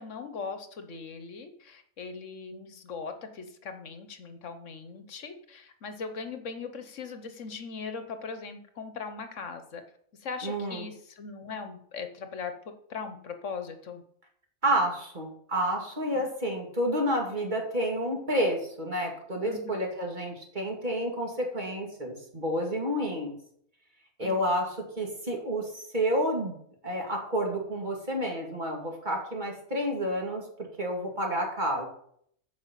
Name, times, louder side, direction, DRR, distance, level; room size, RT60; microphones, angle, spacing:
voice 1, 0.0-9.8 10.2-12.5 12.9-14.0 16.1-16.2 19.4-19.7 24.2-24.6, left 5 dB, 70° left, 8 dB, 1.3 m, -39 dB
voice 2, 10.4-10.9 14.6-23.3 24.2-26.5 26.8-30.4 30.8-31.9, equal, 35° right, 1 dB, 2.3 m, -30 dB
9.5 x 5.2 x 7.4 m, 0.66 s
omnidirectional pair, 1.4 m